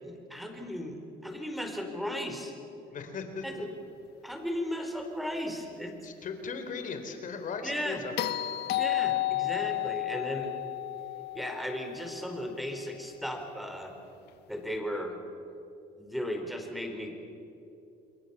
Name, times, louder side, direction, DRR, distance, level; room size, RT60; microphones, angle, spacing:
voice 1, 0.0-2.6 3.4-3.7 4.2-6.0 7.6-8.0 8.7-10.5 11.3-13.9 14.5-15.2 16.0-17.1, equal, ahead, 4 dB, 4.4 m, -36 dB
voice 2, 2.9-3.7 6.0-8.3, left 4 dB, 50° left, 7 dB, 3.7 m, -38 dB
sound 1, 8.2-12.4 14.7-14.8, left 16 dB, 80° left, 1.3 m, -32 dB
28.5 x 22.5 x 7.2 m, 2.9 s
cardioid pair, 110°, 17 cm